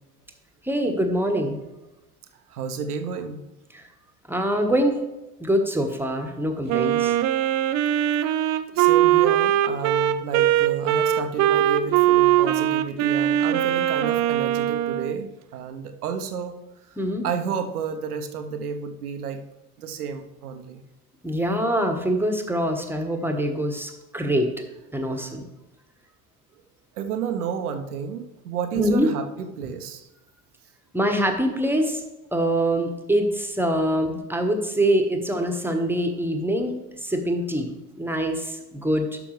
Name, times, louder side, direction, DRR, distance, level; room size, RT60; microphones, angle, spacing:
voice 1, 0.6-1.6 3.7-3.8 4.3-5.1 5.4-7.2 17.0-17.2 21.2-24.5 24.9-25.4 28.7-29.1 30.9-32.0 32.3-39.2, equal, 5° right, 4 dB, 1.3 m, -24 dB
voice 2, 2.5-3.4 8.3-16.6 17.2-19.4 19.8-20.8 25.1-25.3 27.0-30.1, right 7 dB, 80° right, 7 dB, 0.9 m, -31 dB
Wind instrument woodwind instrument, 6.7-15.2, right 12 dB, 40° right, 0.5 m, -21 dB
12.0 x 6.0 x 3.2 m, 1.0 s
figure-of-eight pair, 65°, 45 cm